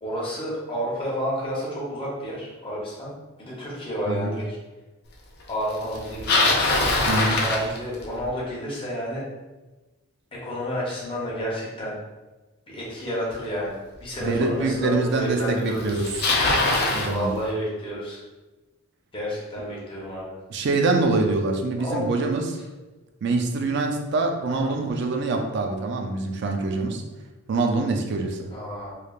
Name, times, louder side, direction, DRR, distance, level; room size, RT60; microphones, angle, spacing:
voice 1, 0.0-3.1 3.4-4.6 5.5-6.6 7.4-9.2 10.3-11.9 12.7-16.1 17.1-18.2 19.1-20.4 21.8-22.0 24.5-24.7 28.5-28.9, equal, 25° left, -6 dB, 0.8 m, -30 dB
Bicycle, 5.9-8.3 13.3-13.4 14.2-14.3 15.4-15.5 15.7-17.1, left 2 dB, 50° left, 0.4 m, -22 dB
voice 2, 7.1-7.4 14.2-16.1 16.9-17.3 20.5-22.6 23.2-27.0 27.5-28.5, right 3 dB, 55° right, 4 dB, 0.3 m, -24 dB
3.1 x 2.1 x 2.3 m, 1.2 s
head